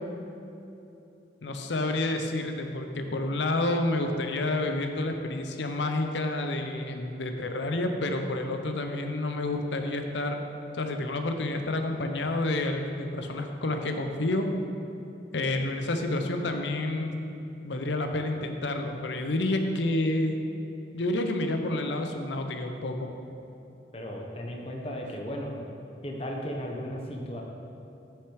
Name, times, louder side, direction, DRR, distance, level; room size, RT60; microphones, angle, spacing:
voice 1, 1.4-10.4 10.7-14.5 15.3-17.2 17.6-20.3 20.9-23.1, left 2 dB, 80° left, 5 dB, 0.7 m, -29 dB
voice 2, 23.9-25.5 26.0-27.4, equal, 30° left, 0 dB, 0.8 m, -35 dB
6.6 x 6.5 x 4.8 m, 2.9 s
head